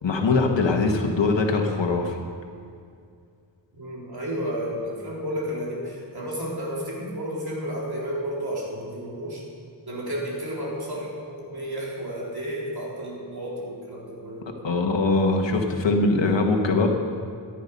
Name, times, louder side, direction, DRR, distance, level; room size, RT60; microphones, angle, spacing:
voice 1, 0.0-2.2 14.6-16.9, left 3 dB, 75° left, 3 dB, 1.6 m, -22 dB
voice 2, 3.7-9.4 9.9-14.5, equal, 55° right, -4 dB, 3.8 m, -32 dB
14.5 x 10.0 x 5.4 m, 2.3 s
wide cardioid pair, 85°, 45 cm